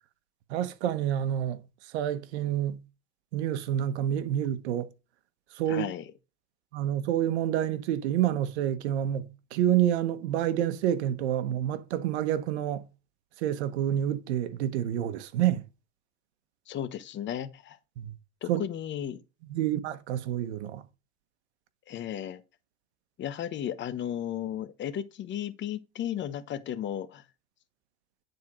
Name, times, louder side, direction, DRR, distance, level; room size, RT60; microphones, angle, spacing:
voice 1, 0.5-1.6 1.9-2.8 3.3-4.9 5.6-5.9 6.7-12.8 13.4-15.6 18.0-18.1 18.5-18.6 19.5-20.8, right 11 dB, 85° right, 1.2 m, -28 dB
voice 2, 5.7-6.1 16.7-17.8 18.4-19.2 21.9-22.4 23.2-27.2, left 10 dB, 35° left, 1.1 m, -34 dB
9.7 x 4.3 x 4.9 m
supercardioid pair, 125°, 32 cm